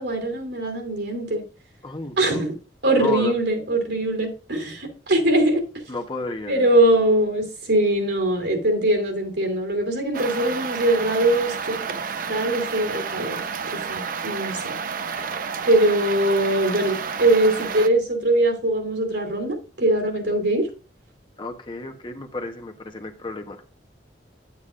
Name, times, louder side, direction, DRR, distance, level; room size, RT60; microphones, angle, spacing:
voice 1, 0.0-1.4 2.2-2.5 2.8-5.6 6.5-12.0 12.3-13.4 13.7-14.8 15.6-20.7, right 1 dB, 80° right, 3 dB, 2.7 m, -22 dB
voice 2, 1.8-2.4 3.0-3.3 5.9-6.7 21.4-23.6, left 2 dB, 30° left, 4 dB, 1.1 m, -32 dB
sound 1, 10.1-17.9, right 6 dB, 50° right, 0.5 m, -30 dB
9.2 x 8.4 x 2.5 m, 0.34 s
head